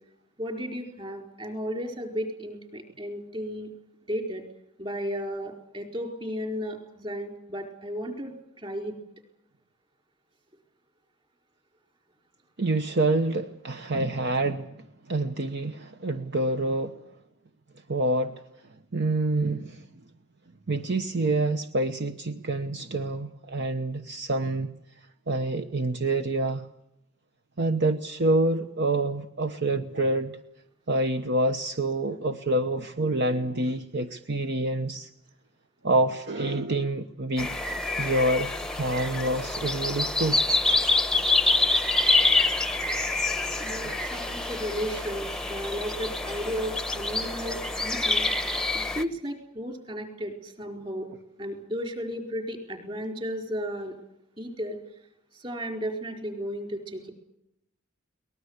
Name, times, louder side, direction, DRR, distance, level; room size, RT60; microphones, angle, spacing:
voice 1, 0.4-3.7 4.0-4.4 4.8-9.0 43.6-48.3 48.9-51.1 51.4-53.9 54.4-54.8 55.3-57.1, equal, 25° right, 4 dB, 4.5 m, -34 dB
voice 2, 12.6-17.0 17.9-18.3 18.9-19.9 20.7-24.7 25.3-26.7 27.6-30.4 30.9-35.1 35.8-37.5 38.0-40.4 43.8-43.9, right 2 dB, 55° right, 8 dB, 1.1 m, -27 dB
sound 1, 37.4-49.0, left 2 dB, 5° left, 0.9 m, -26 dB
23.0 x 19.5 x 8.2 m, 0.81 s
head